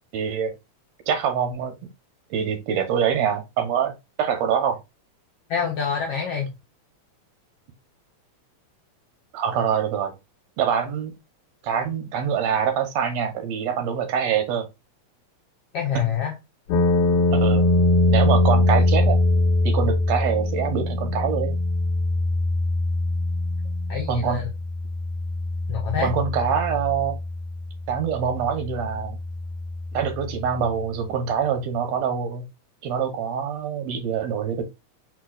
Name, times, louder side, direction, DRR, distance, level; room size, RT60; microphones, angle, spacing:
voice 1, 0.1-0.5 1.1-1.8 2.3-3.9 4.2-4.8 9.3-10.1 10.6-11.1 11.6-14.7 15.9-16.1 17.3-17.7 18.1-19.2 19.6-21.6 24.1-24.5 26.0-27.2 27.9-29.2 29.9-32.5 32.8-34.6, right 7 dB, 70° right, 2.1 m, -25 dB
voice 2, 5.5-6.5 15.7-16.3 23.9-24.5 25.7-26.1, left 7 dB, 65° left, 1.6 m, -26 dB
sound 1, 16.7-30.7, left 2 dB, 90° left, 2.1 m, -23 dB
4.5 x 4.4 x 2.4 m
omnidirectional pair, 3.3 m